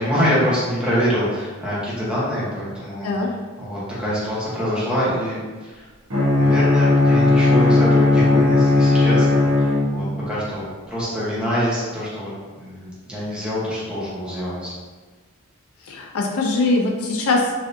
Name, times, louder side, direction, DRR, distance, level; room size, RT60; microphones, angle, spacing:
voice 1, 0.0-3.1 3.6-5.9 6.4-12.3 12.6-14.7, equal, 5° right, -9 dB, 1.0 m, -25 dB
Bowed string instrument, 6.1-10.3, left 2 dB, 85° right, 1.0 m, -16 dB
voice 2, 15.9-17.6, left 2 dB, 85° left, 0 dB, 0.5 m, -21 dB
3.2 x 2.6 x 2.6 m, 1.4 s
head